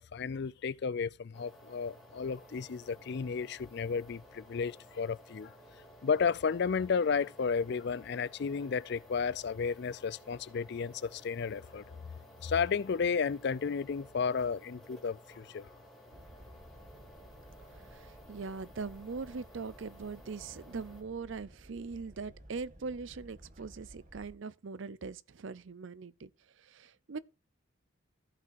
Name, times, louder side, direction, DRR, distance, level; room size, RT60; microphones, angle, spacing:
voice 1, 0.0-5.5 6.0-12.0 12.4-15.7, left 5 dB, 50° left, 0.4 m, -33 dB
sound 1, 1.3-21.0, equal, ahead, 2.9 m, -56 dB
sound 2, 16.1-24.3, right 1 dB, 35° right, 1.5 m, -55 dB
voice 2, 17.7-26.3 26.6-27.2, right 4 dB, 65° right, 0.5 m, -41 dB
15.0 x 5.9 x 2.6 m
head